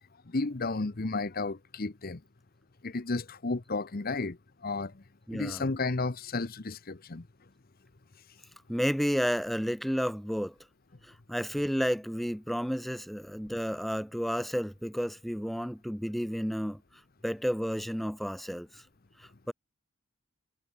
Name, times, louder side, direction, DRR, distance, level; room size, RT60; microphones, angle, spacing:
voice 1, 0.3-2.2 2.8-4.4 4.6-4.9 5.3-7.2, left 3 dB, 45° left, 0.9 m, -32 dB
voice 2, 5.3-5.6 8.7-10.5 11.3-16.8 17.2-18.8 19.5-19.6, equal, ahead, 1.3 m, -31 dB
head